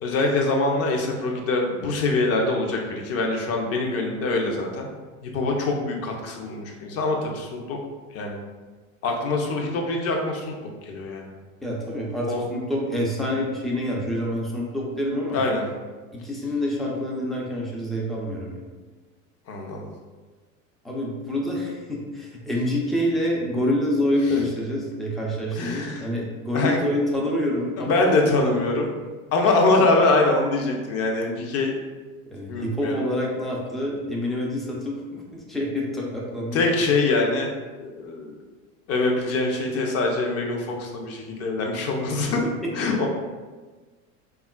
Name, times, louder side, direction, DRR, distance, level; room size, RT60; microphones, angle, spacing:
voice 1, 0.0-4.9 5.2-7.8 8.1-8.4 9.0-10.5 10.9-11.3 12.3-12.4 15.3-15.6 19.5-19.9 25.5-26.1 26.5-26.8 27.9-28.9 29.3-31.7 32.5-33.0 36.5-37.5 37.8-38.3 38.9-42.4 42.7-43.1, left 3 dB, 35° left, 1 dB, 0.6 m, -24 dB
voice 2, 11.6-15.4 16.1-18.6 20.8-28.1 28.3-28.6 32.3-36.6 42.8-42.9, left 1 dB, ahead, -3 dB, 0.3 m, -27 dB
3.5 x 2.3 x 2.2 m, 1.3 s
hypercardioid pair, 95°, 40 cm